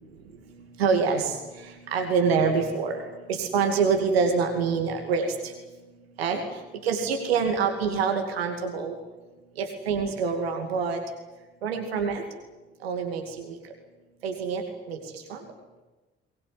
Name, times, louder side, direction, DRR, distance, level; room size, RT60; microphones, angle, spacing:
voice 1, 0.8-1.3 1.9-3.0 3.3-5.3 6.2-6.4 6.8-8.9 9.6-11.0 11.6-12.2 12.8-13.2 14.2-15.0 15.3-15.4, right 5 dB, 85° right, 4 dB, 2.5 m, -25 dB
22.5 x 20.5 x 9.5 m, 1.1 s
figure-of-eight pair, 45°, 30 cm